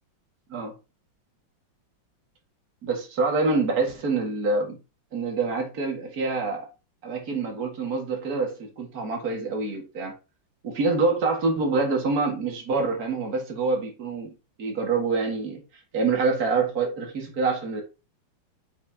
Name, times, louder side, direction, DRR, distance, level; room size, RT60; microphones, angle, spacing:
voice 1, 2.8-4.8 5.1-6.7 7.0-10.2 10.6-14.3 14.6-15.6 15.9-17.8, right 3 dB, 45° right, 2.2 m, -26 dB
7.2 x 6.0 x 2.8 m
omnidirectional pair, 2.2 m